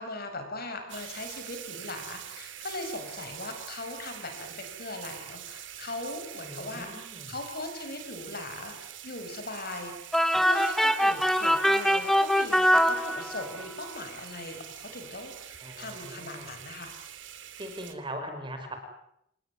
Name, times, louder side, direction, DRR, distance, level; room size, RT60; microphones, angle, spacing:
voice 1, 0.0-9.9 10.4-16.9, left 2 dB, 50° left, 6 dB, 6.0 m, -39 dB
sound 1, 0.9-17.9, right 10 dB, 65° right, 3.0 m, -44 dB
voice 2, 6.4-7.3 15.6-16.5 17.6-18.8, right 1 dB, 25° right, 6 dB, 5.3 m, -40 dB
sound 2, 10.1-13.6, equal, ahead, 1.1 m, -23 dB
27.5 x 20.5 x 9.7 m, 0.77 s
head